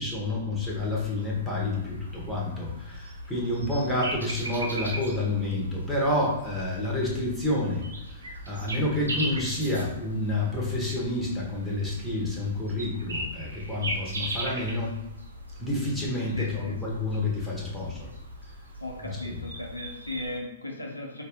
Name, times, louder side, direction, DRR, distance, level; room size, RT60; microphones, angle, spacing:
voice 1, 0.0-15.0 15.6-18.1 19.2-19.4, left 2 dB, ahead, -5 dB, 1.3 m, -29 dB
sound 1, 0.6-20.4, right 1 dB, 75° right, 0.8 m, -39 dB
voice 2, 16.3-16.8 18.8-21.2, left 2 dB, 85° left, -1 dB, 0.8 m, -36 dB
5.1 x 2.5 x 3.1 m, 0.89 s
figure-of-eight pair, 110°, 0 cm